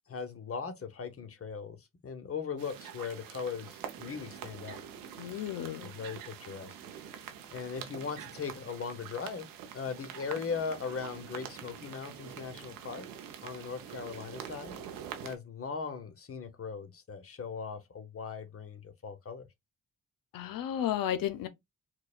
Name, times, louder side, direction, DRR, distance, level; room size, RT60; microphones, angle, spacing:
voice 1, 0.1-4.8 5.2-5.4 5.8-7.0 7.5-13.1 13.4-14.8 15.2-19.5, left 5 dB, 45° left, 0.9 m, -39 dB
sound 1, 2.6-15.4, right 9 dB, 90° right, 0.7 m, -45 dB
voice 2, 5.2-5.9 20.3-21.5, left 11 dB, 90° left, 0.6 m, -33 dB
4.6 x 2.2 x 2.4 m
cardioid pair, 60°, 33 cm